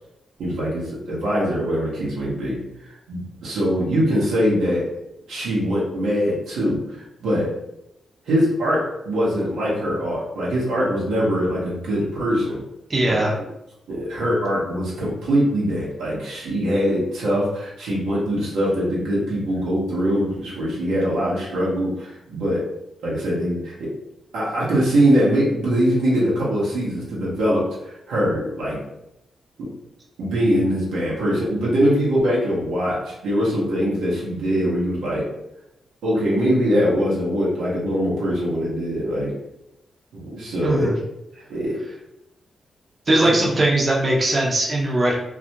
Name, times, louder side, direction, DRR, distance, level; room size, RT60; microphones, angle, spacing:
voice 1, 0.4-4.9 5.3-7.5 8.3-12.6 13.1-13.4 13.9-22.7 23.0-23.9 24.3-28.8 29.6-29.7 30.2-35.3 36.0-39.4 40.1-40.9 41.5-41.8 43.1-43.3, equal, 85° right, -6 dB, 0.8 m, -22 dB
voice 2, 12.9-13.4 40.6-40.9 43.1-45.2, right 1 dB, 40° right, -4 dB, 0.6 m, -20 dB
2.4 x 2.1 x 2.8 m, 0.86 s
supercardioid pair, 50°, 0 cm